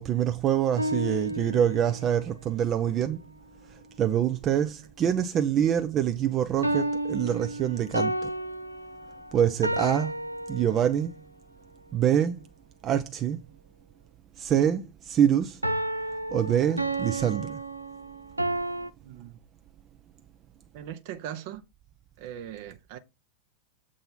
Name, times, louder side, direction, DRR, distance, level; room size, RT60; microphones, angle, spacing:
voice 1, 0.0-3.2 4.0-8.3 9.3-10.1 10.5-11.1 11.9-12.4 12.8-13.4 14.4-15.6 16.3-17.6, right 9 dB, 30° right, 0.5 m, -25 dB
sound 1, 0.8-2.1 6.6-11.2 15.6-18.9, right 1 dB, 85° right, 0.5 m, -31 dB
voice 2, 19.0-19.4 20.7-21.6 22.2-23.0, right 10 dB, 50° right, 0.9 m, -39 dB
7.8 x 3.8 x 5.8 m
figure-of-eight pair, 90°, 0 cm